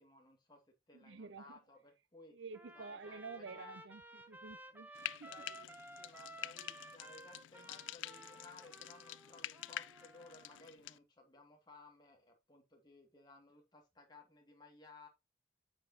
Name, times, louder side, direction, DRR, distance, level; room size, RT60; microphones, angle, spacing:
voice 1, 0.0-2.4 2.7-3.8 5.3-15.1, left 2 dB, 20° left, 2.3 m, -60 dB
voice 2, 0.9-1.6 2.3-5.5, right 4 dB, 75° right, 0.7 m, -50 dB
Trumpet, 2.5-10.7, right 1 dB, 10° right, 0.8 m, -55 dB
Frying (food), 4.9-11.0, left 13 dB, 75° left, 0.3 m, -48 dB
8.8 x 8.1 x 2.9 m
head